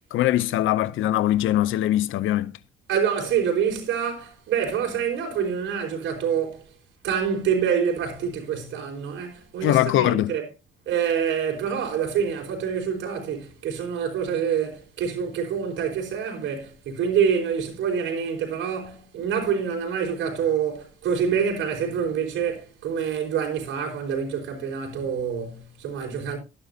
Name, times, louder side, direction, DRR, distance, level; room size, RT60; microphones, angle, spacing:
voice 1, 0.1-2.5 9.6-10.3, left 13 dB, 85° left, 0.7 m, -22 dB
voice 2, 2.9-6.6 7.0-10.5 10.9-26.4, right 7 dB, 75° right, 4.5 m, -26 dB
13.0 x 11.0 x 2.8 m
cardioid pair, 90°, 20 cm